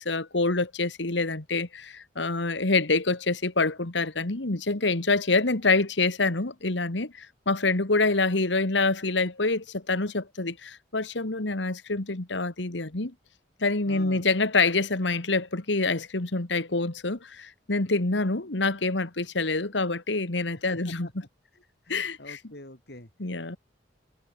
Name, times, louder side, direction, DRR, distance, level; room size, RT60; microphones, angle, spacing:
voice 1, 0.0-13.1 13.6-21.1 21.9-22.4 23.2-23.6, left 3 dB, 80° left, 1.9 m, -26 dB
voice 2, 13.9-14.2 20.5-21.3 21.5-23.6, left 1 dB, 60° left, 4.5 m, -46 dB
head